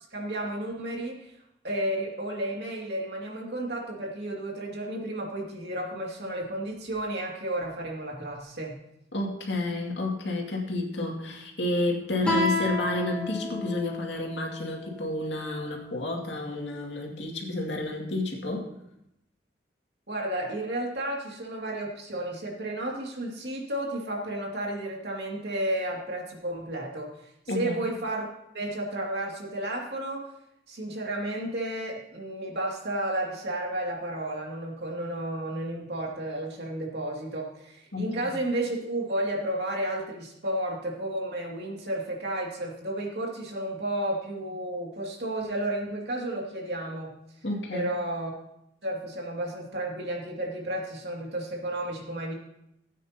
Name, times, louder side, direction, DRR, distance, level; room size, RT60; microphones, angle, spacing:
voice 1, 0.1-1.3 1.6-8.8 20.1-27.1 27.5-28.3 28.5-30.2 30.7-47.1 47.7-48.3 48.8-52.3, right 1 dB, 65° right, -2 dB, 2.5 m, -32 dB
voice 2, 9.1-18.7 27.5-27.8 37.9-38.1 47.4-47.9, left 2 dB, 90° left, 0 dB, 2.3 m, -30 dB
Guitar, 12.2-15.5, left 2 dB, 5° left, 3.2 m, -31 dB
17.0 x 9.0 x 2.9 m, 0.81 s
head